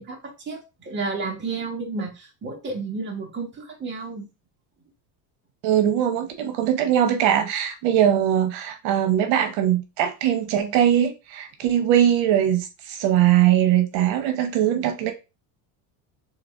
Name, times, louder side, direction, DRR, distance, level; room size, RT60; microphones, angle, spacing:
voice 1, 0.0-4.3, right 4 dB, 25° right, 1.4 m, -32 dB
voice 2, 5.6-15.1, right 10 dB, 75° right, 1.0 m, -21 dB
3.9 x 3.4 x 3.6 m
cardioid pair, 155°, 44 cm